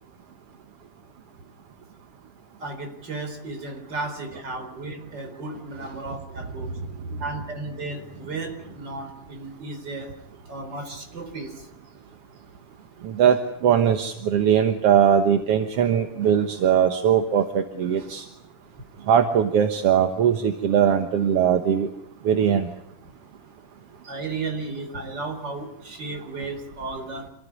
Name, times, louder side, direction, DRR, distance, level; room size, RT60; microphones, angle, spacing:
voice 1, 2.6-6.7 7.2-10.1 10.5-11.7 24.1-27.3, right 3 dB, 35° right, 5 dB, 4.6 m, -34 dB
voice 2, 13.0-18.3 19.1-21.9 22.2-22.7 24.0-24.1, right 8 dB, 55° right, 7 dB, 1.9 m, -20 dB
27.0 x 16.5 x 9.9 m, 0.78 s
omnidirectional pair, 3.7 m